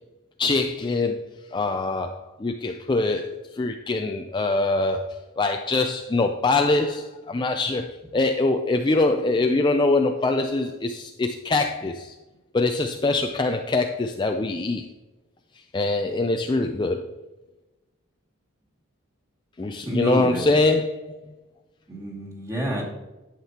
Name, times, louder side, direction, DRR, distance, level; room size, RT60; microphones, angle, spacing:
voice 1, 0.4-12.2 12.5-14.9 15.7-17.1 19.6-21.3, left 2 dB, 20° left, 4 dB, 0.4 m, -24 dB
voice 2, 19.9-20.4 21.9-22.8, right 1 dB, 15° right, -3 dB, 2.2 m, -27 dB
11.0 x 7.4 x 2.9 m, 1.0 s
head